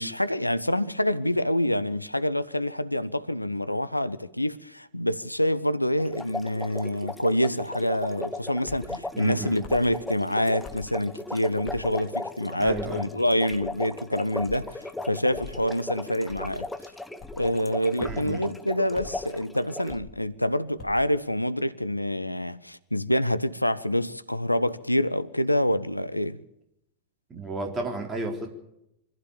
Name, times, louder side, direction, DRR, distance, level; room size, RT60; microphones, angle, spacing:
voice 1, 0.0-16.7 17.3-26.4, left 1 dB, 85° left, 0.8 m, -26 dB
sound 1, 6.0-20.0, left 2 dB, 5° left, 1.2 m, -37 dB
sound 2, 8.6-8.9 9.6-9.9 10.6-10.9 11.6-11.9 12.6-12.9 13.5-13.8 14.4-14.7 15.3-15.6 16.3-16.6 17.2-17.4 18.0-18.3 18.9-19.2 19.9-20.2 20.8-21.0, left 4 dB, 35° left, 5.0 m, -43 dB
voice 2, 9.1-9.6 12.6-13.1 18.0-18.5 27.3-28.5, right 3 dB, 20° right, 4.1 m, -33 dB
25.0 x 15.5 x 7.2 m
figure-of-eight pair, 90°, 0 cm